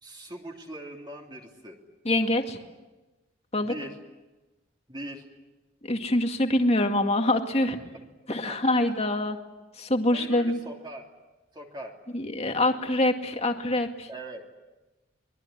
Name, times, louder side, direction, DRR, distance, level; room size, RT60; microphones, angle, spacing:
voice 1, 0.0-1.8 3.6-3.9 4.9-5.2 8.3-8.6 8.8-8.9 10.1-11.0 11.5-11.9 14.1-14.4, right 1 dB, 25° right, 0 dB, 3.1 m, -40 dB
voice 2, 2.0-2.6 3.5-3.7 5.8-7.8 8.3-9.4 9.8-10.6 12.1-14.1, left 1 dB, 35° left, 4 dB, 2.2 m, -25 dB
24.5 x 21.0 x 9.9 m, 1.1 s
head